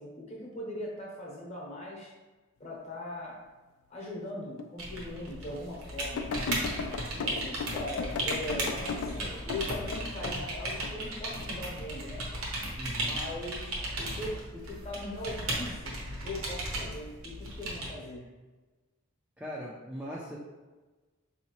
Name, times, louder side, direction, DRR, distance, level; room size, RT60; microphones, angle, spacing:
voice 1, 0.0-2.1 2.6-3.4 3.9-6.3 7.1-12.3 13.0-16.0 16.2-18.2, left 1 dB, 30° left, -3 dB, 0.9 m, -40 dB
sound 1, 4.6-4.7 5.3-5.4 6.2-10.4 10.8-11.5 12.1-12.4, left 4 dB, 85° left, 0.3 m, -36 dB
sound 2, 4.8-17.9, right 1 dB, 80° right, 0.9 m, -36 dB
voice 2, 12.8-13.2 19.4-20.4, equal, 5° right, -5 dB, 0.4 m, -39 dB
4.7 x 2.7 x 2.9 m, 1.2 s
head